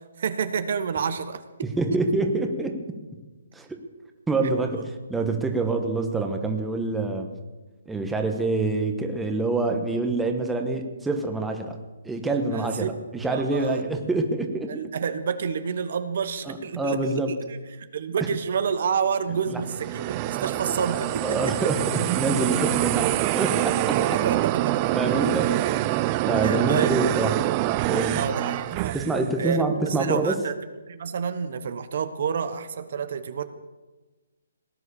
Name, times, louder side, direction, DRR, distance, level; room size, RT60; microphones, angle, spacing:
voice 1, 0.0-1.7 4.4-4.8 12.5-12.9 13.3-13.8 14.7-21.4 23.9-24.8 25.6-25.7 26.4-26.9 28.1-29.0 29.4-30.5 30.9-33.4, right 6 dB, 55° right, 11 dB, 1.1 m, -29 dB
voice 2, 1.8-2.8 3.5-3.8 4.3-4.8 5.1-7.3 7.9-11.8 12.0-14.8 16.5-17.3 19.5-19.6 21.2-24.0 24.6-25.5 25.9-26.0 26.3-27.4 27.9-28.2 28.9-30.4, right 3 dB, 5° right, 4 dB, 1.3 m, -26 dB
sound 1, 19.6-29.3, right 17 dB, 25° right, 0.4 m, -25 dB
18.0 x 9.8 x 7.0 m, 1.2 s
hypercardioid pair, 155°, 0 cm